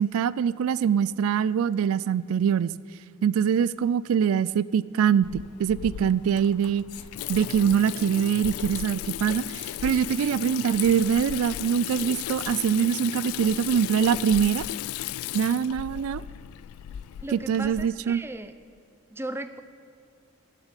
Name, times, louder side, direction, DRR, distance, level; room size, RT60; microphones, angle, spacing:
voice 1, 0.0-2.7 3.2-6.8 7.3-14.6 15.3-16.2 17.3-18.2, right 8 dB, 80° right, 20 dB, 0.3 m, -24 dB
Water tap faucet / Sink (filling or washing), 5.2-17.9, left 12 dB, 90° left, 0.3 m, -35 dB
voice 2, 17.2-18.5 19.1-19.6, right 1 dB, 10° right, 10 dB, 0.5 m, -36 dB
13.0 x 7.2 x 8.2 m, 2.4 s
head